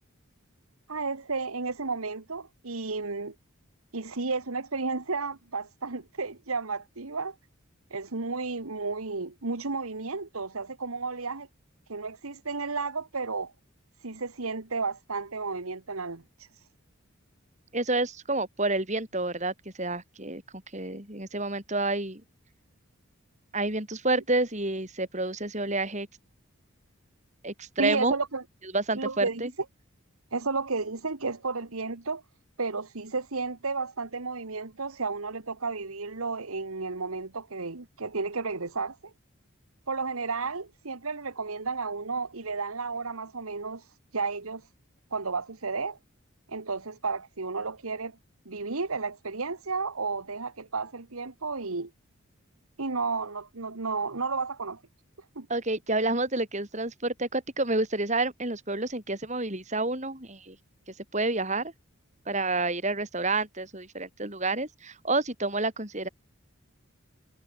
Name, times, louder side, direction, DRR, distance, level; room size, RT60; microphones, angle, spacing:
voice 1, 0.9-3.3 3.9-7.4 7.9-11.5 11.9-13.5 14.0-16.2 27.8-28.4 28.9-29.5 30.3-32.2 32.6-39.1 39.9-43.8 44.1-44.6 45.1-46.0 46.5-48.2 48.5-51.9 52.8-54.8 55.4-55.5, right 4 dB, 90° right, 1.6 m, -32 dB
voice 2, 17.7-22.2 23.5-26.1 27.4-28.1 28.7-29.5 55.5-60.6 61.1-61.7 62.3-66.1, right 2 dB, 35° right, 5.7 m, -29 dB
head